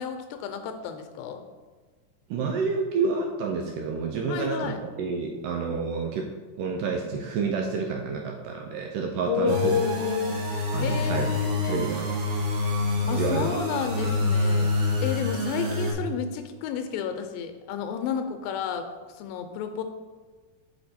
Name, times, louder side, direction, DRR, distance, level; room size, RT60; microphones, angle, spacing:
voice 1, 0.0-1.4 4.3-4.8 9.3-10.4 10.8-11.9 13.1-14.7 15.0-19.8, left 8 dB, 85° left, 7 dB, 2.4 m, -31 dB
voice 2, 2.3-6.3 6.6-9.6 10.7-11.3 11.7-12.1 13.2-13.5 14.0-14.1, right 5 dB, 85° right, 2 dB, 1.9 m, -29 dB
sound 1, 9.5-15.9, left 2 dB, 65° right, 2.4 m, -27 dB
6.0 x 5.2 x 4.2 m, 1.4 s
omnidirectional pair, 4.2 m